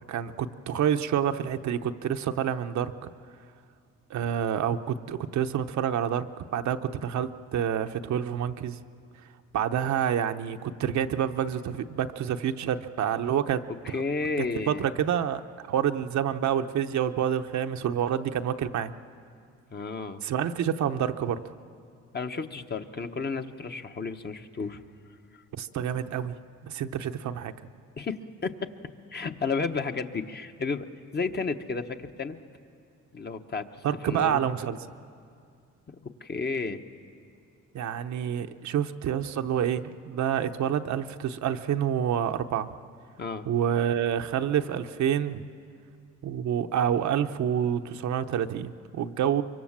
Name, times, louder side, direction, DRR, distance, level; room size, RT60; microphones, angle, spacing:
voice 1, 0.1-3.1 4.1-6.3 6.5-8.8 9.5-14.0 14.7-15.4 15.7-18.9 20.2-21.4 25.5-26.3 26.6-27.5 33.8-34.8 37.7-42.8 43.5-45.5 46.2-49.4, right 9 dB, 65° right, 7 dB, 0.9 m, -28 dB
voice 2, 13.8-14.9 19.7-20.2 22.1-24.8 28.0-28.7 29.1-30.9 31.1-32.4 33.1-33.7 34.0-34.4 35.9-36.8 43.2-43.5, left 4 dB, 35° left, 6 dB, 1.1 m, -32 dB
24.5 x 23.5 x 7.4 m, 2.3 s
cardioid pair, 90°, 30 cm